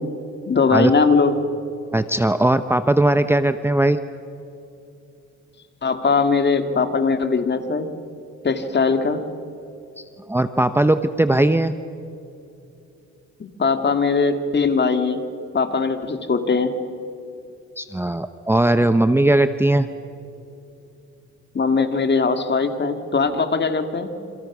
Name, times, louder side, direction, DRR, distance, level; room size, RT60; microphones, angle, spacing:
voice 1, 0.5-1.3 5.8-7.9 8.4-9.2 13.4-15.3 15.5-16.8 21.5-24.1, left 4 dB, 35° left, 8 dB, 2.3 m, -20 dB
voice 2, 1.9-4.0 10.0-11.7 17.8-19.9, right 1 dB, 10° right, 10 dB, 0.8 m, -19 dB
28.5 x 27.0 x 6.2 m, 2.8 s
cardioid pair, 90°, 30 cm